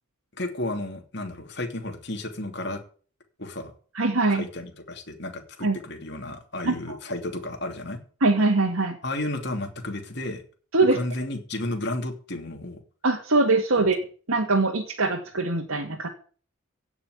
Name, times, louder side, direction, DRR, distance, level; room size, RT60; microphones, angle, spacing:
voice 1, 0.4-2.8 3.4-3.7 4.3-8.0 9.0-10.4 10.9-12.8, left 1 dB, 50° left, 4 dB, 3.0 m, -32 dB
voice 2, 3.9-4.4 5.6-5.8 6.6-6.7 8.2-9.0 10.7-11.0 13.0-14.0 14.3-16.1, right 3 dB, 85° right, 1 dB, 2.1 m, -22 dB
16.0 x 6.1 x 9.6 m, 0.41 s
head